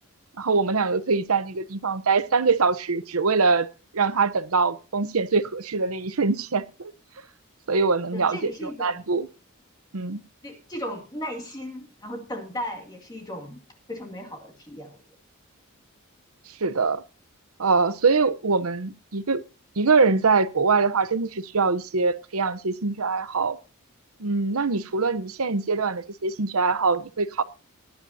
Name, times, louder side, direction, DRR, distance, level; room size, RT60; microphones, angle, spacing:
voice 1, 0.4-3.7 3.9-6.9 7.7-9.3 9.9-10.2 16.6-17.0 17.6-19.4 19.8-23.6 24.2-27.4, right 4 dB, 80° right, 0.9 m, -23 dB
voice 2, 8.1-9.0 10.4-13.6 13.9-15.0, left 1 dB, 20° left, 2.3 m, -36 dB
18.5 x 11.0 x 2.7 m
head